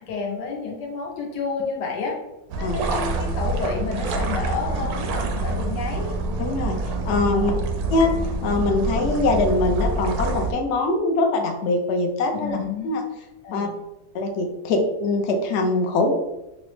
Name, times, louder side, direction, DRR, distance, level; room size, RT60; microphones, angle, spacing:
voice 1, 0.0-2.2 2.5-6.2 7.3-7.6 12.4-12.9 13.4-13.8, left 5 dB, 85° left, 0 dB, 1.4 m, -30 dB
sound 1, 2.5-10.5, right 2 dB, 70° right, 1.0 m, -26 dB
voice 2, 6.4-6.8 7.0-7.5 7.9-8.1 8.4-12.6 12.8-13.0 13.5-13.7 14.1-16.1, left 2 dB, 65° left, 2 dB, 0.7 m, -22 dB
4.9 x 2.0 x 3.1 m, 0.96 s
omnidirectional pair, 1.8 m